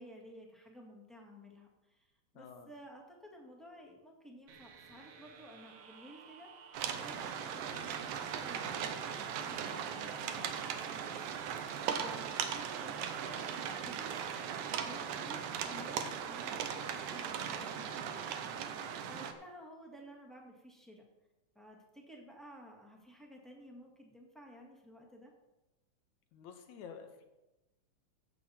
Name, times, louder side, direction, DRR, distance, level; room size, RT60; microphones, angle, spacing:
voice 1, 0.0-14.4 14.7-18.8 19.1-21.0 21.5-25.3, equal, ahead, -1 dB, 1.1 m, -54 dB
voice 2, 2.4-2.7 26.3-27.2, left 6 dB, 70° left, 6 dB, 2.4 m, -50 dB
sound 1, 4.5-14.9, right 6 dB, 60° right, 1.9 m, -55 dB
sound 2, 6.7-19.3, right 8 dB, 85° right, 2.4 m, -38 dB
16.0 x 7.7 x 4.3 m, 1.0 s
omnidirectional pair, 3.5 m